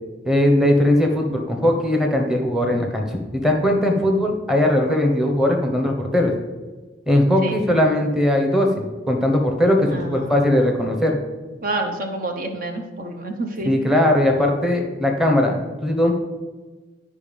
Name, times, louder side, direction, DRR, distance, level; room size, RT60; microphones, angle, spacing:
voice 1, 0.2-6.3 7.1-11.2 13.6-16.1, left 1 dB, 5° right, 1 dB, 1.2 m, -19 dB
voice 2, 4.6-4.9 7.4-7.6 9.9-10.3 11.6-13.8, right 2 dB, 50° right, 4 dB, 0.9 m, -29 dB
10.5 x 5.3 x 5.4 m, 1.3 s
head